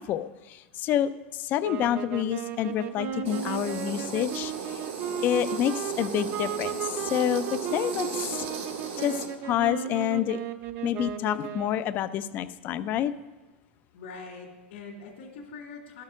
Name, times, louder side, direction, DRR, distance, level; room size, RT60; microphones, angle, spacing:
voice 1, 0.0-4.8 5.2-8.5 9.0-10.4 10.8-13.1, left 11 dB, 30° left, 14 dB, 0.4 m, -28 dB
sound 1, 1.6-12.0, right 8 dB, 35° right, 0.6 m, -35 dB
sound 2, 3.2-9.3, right 5 dB, 85° right, 2.1 m, -36 dB
voice 2, 13.9-16.0, left 4 dB, 75° left, -2 dB, 2.0 m, -43 dB
12.0 x 6.5 x 6.2 m, 1.2 s
supercardioid pair, 165°, 6 cm